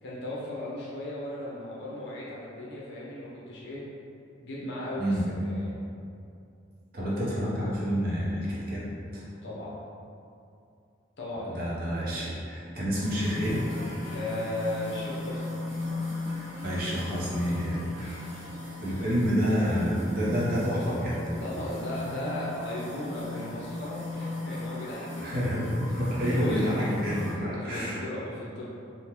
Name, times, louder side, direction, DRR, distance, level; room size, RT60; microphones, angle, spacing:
voice 1, 0.0-3.8 4.4-5.2 5.4-5.7 9.4-9.7 11.2-11.6 14.1-15.6 19.0-19.1 21.4-25.5 26.2-27.2 27.5-28.6, left 1 dB, 65° left, -6 dB, 0.7 m, -36 dB
voice 2, 6.9-8.9 9.1-9.2 11.4-13.6 16.6-18.3 18.8-21.4 25.2-28.0, equal, 50° right, -7 dB, 0.7 m, -28 dB
sound 1, 13.0-27.3, left 2 dB, 15° right, 1.1 m, -37 dB
3.5 x 2.1 x 2.9 m, 2.5 s
head